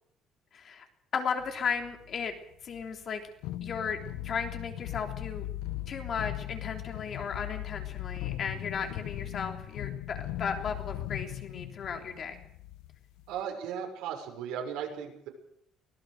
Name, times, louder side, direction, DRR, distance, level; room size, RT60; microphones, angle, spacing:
voice 1, 0.5-0.8 1.1-2.3 2.6-3.3 3.6-4.0 4.2-5.5 5.9-12.4, left 6 dB, 40° left, 4 dB, 3.4 m, -35 dB
sound 1, 1.4-2.3 2.7-3.0 3.4-13.4, left 13 dB, 85° left, 1.1 m, -39 dB
voice 2, 13.3-15.3, right 8 dB, 80° right, 3 dB, 6.2 m, -36 dB
24.0 x 18.5 x 6.7 m, 0.71 s
cardioid pair, 155°, 0 cm